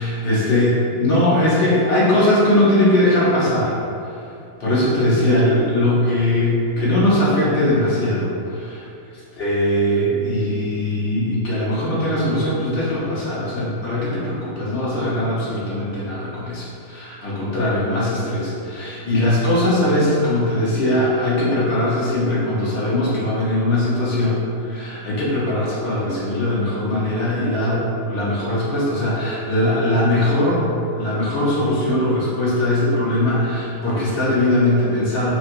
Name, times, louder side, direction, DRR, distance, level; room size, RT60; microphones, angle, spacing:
voice 1, 0.0-3.7 4.6-8.8 9.4-30.7 30.9-35.3, left 1 dB, 45° left, -8 dB, 1.2 m, -20 dB
4.7 x 2.2 x 3.2 m, 2.6 s
figure-of-eight pair, 90°, 0 cm